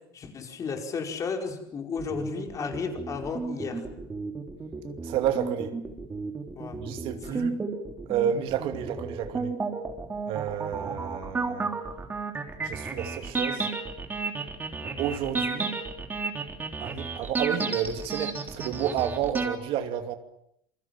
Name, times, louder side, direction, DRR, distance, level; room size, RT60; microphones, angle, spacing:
voice 1, 0.0-3.9 6.6-6.8 7.2-7.4, left 5 dB, 30° left, 5.0 m, -34 dB
sound 1, 2.0-19.5, right 4 dB, 15° right, 3.5 m, -32 dB
voice 2, 5.0-5.7 6.8-7.5 8.1-9.5 10.3-11.7 12.6-13.7 14.8-15.7 16.8-20.2, right 9 dB, 55° right, 2.5 m, -30 dB
28.0 x 23.5 x 7.4 m
cardioid pair, 135°, 11 cm